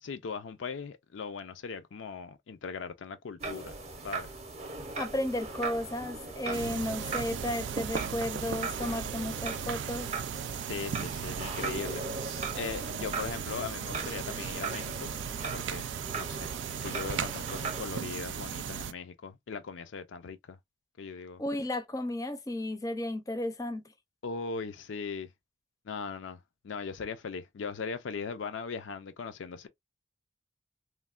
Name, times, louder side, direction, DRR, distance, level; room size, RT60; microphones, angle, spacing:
voice 1, 0.0-3.7 4.0-4.3 6.5-6.9 10.7-12.0 12.5-15.1 15.5-15.9 16.1-20.6 21.0-21.4 24.2-25.3 25.9-29.7, left 5 dB, 85° left, 0.4 m, -39 dB
sound 1, 3.4-17.8, right 4 dB, 35° right, 0.6 m, -39 dB
voice 2, 5.0-10.1 21.4-23.8, left 1 dB, 20° left, 0.5 m, -33 dB
sound 2, 6.5-18.9, right 8 dB, 70° right, 0.3 m, -37 dB
3.1 x 2.1 x 2.3 m
head